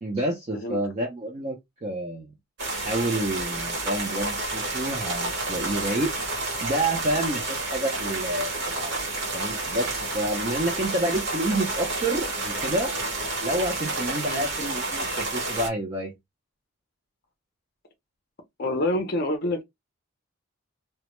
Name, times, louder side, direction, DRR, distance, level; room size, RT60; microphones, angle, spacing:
voice 1, 0.0-2.3 2.7-6.1 6.6-9.0 9.3-12.9 13.4-16.1, right 1 dB, 30° right, 0.4 m, -29 dB
sound 1, 2.6-15.7, right 2 dB, 50° right, 1.0 m, -30 dB
voice 2, 18.6-19.6, left 1 dB, 45° left, 0.5 m, -27 dB
2.1 x 2.0 x 2.9 m
head